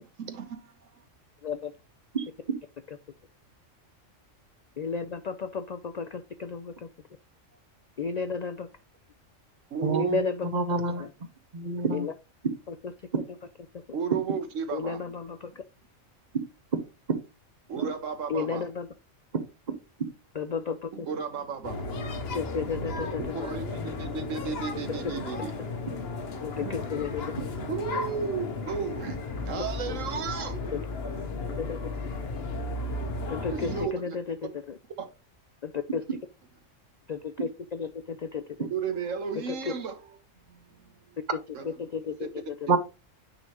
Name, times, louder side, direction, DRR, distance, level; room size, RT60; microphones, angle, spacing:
voice 1, 0.2-0.9 9.7-10.2 13.9-15.0 17.7-18.7 20.9-21.9 23.2-25.5 26.5-27.1 27.7-30.6 33.5-34.2 35.0-35.1 38.7-40.0 40.5-40.6 41.5-41.7 42.2-42.3 42.7-42.8, right 6 dB, 75° right, 1.3 m, -34 dB
voice 2, 1.4-1.7 2.2-2.3 4.8-6.9 8.0-8.7 9.9-10.5 11.0-11.1 11.9-12.1 12.7-12.8 13.9-14.0 14.7-15.6 18.3-18.9 20.3-21.1 22.3-23.5 26.4-27.3 27.9-28.0 29.9-30.0 30.7-30.8 31.6-31.8 33.3-34.8 35.6-36.0 37.1-38.7 39.5-39.7 41.3-41.4 41.6-42.7, left 5 dB, 90° left, 0.3 m, -33 dB
voice 3, 9.8-11.1 11.5-12.1 19.3-19.4 42.7-42.8, right 4 dB, 40° right, 1.0 m, -27 dB
sound 1, 21.6-33.9, left 3 dB, 55° left, 1.0 m, -34 dB
9.2 x 3.9 x 3.0 m
omnidirectional pair, 1.3 m